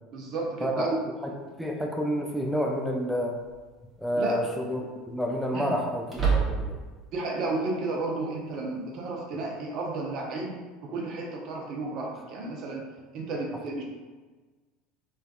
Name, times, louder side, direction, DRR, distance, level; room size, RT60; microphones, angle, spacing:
voice 1, 0.1-1.0 4.2-4.4 5.5-5.7 7.1-10.5 10.8-12.8 13.1-13.8, right 3 dB, 55° right, -1 dB, 0.6 m, -32 dB
voice 2, 1.2-3.4 4.0-6.8, equal, ahead, 0 dB, 0.4 m, -29 dB
sound 1, 1.5-1.6 3.4-3.8 4.2-4.3 6.0-6.9, right 5 dB, 25° right, 0.9 m, -27 dB
3.3 x 2.3 x 2.3 m, 1.3 s
hypercardioid pair, 70°, 0 cm